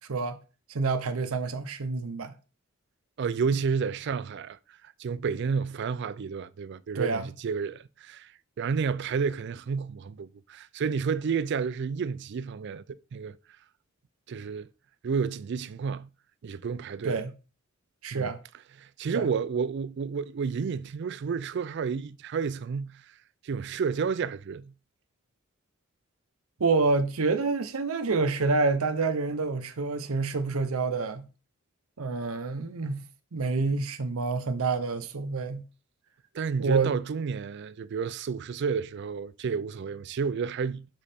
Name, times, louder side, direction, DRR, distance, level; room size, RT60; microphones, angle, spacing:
voice 1, 0.7-2.3 6.9-7.3 17.0-17.3 18.0-18.4 19.1-19.3 26.6-31.3 32.0-33.0 33.3-35.6 36.6-36.9, right 4 dB, 90° right, 0.7 m, -27 dB
voice 2, 3.2-4.6 5.0-8.3 8.6-13.4 14.3-14.7 15.0-16.1 16.4-17.2 18.1-18.3 18.8-23.0 23.4-24.7 36.3-40.9, right 5 dB, 55° right, 0.4 m, -30 dB
6.3 x 5.2 x 4.2 m
head